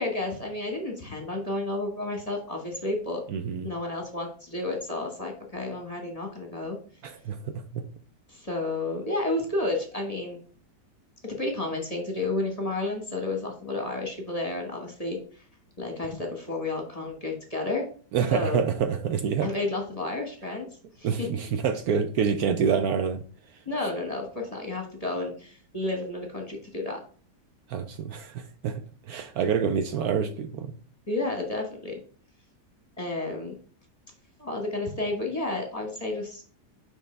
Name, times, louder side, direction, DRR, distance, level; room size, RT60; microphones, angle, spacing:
voice 1, 0.0-3.2 3.6-6.8 8.3-10.4 11.2-15.2 15.8-17.8 18.3-18.6 19.4-20.7 21.0-21.3 23.6-27.0 31.1-31.9 33.0-33.5 34.4-36.4, left 2 dB, 25° left, 1 dB, 1.3 m, -31 dB
voice 2, 3.3-3.7 7.0-7.4 7.7-7.8 18.1-19.5 21.0-23.2 27.7-28.8 29.1-30.7, right 7 dB, 70° right, 8 dB, 1.0 m, -27 dB
6.3 x 5.3 x 3.3 m, 0.42 s
omnidirectional pair, 1.8 m